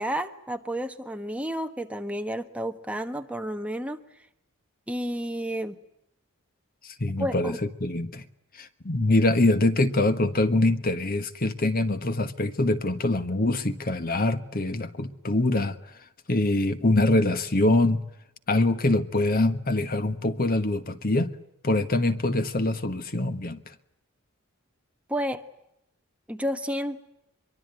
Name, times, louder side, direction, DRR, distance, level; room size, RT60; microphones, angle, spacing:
voice 1, 0.0-4.0 4.9-5.8 7.2-7.6 25.1-25.4 26.3-27.0, equal, 5° right, 6 dB, 1.3 m, -31 dB
voice 2, 6.8-7.5 7.8-8.2 8.5-15.8 16.3-18.0 18.5-21.3 21.6-23.6, left 2 dB, 40° left, 11 dB, 1.4 m, -24 dB
24.0 x 23.5 x 9.5 m, 0.81 s
head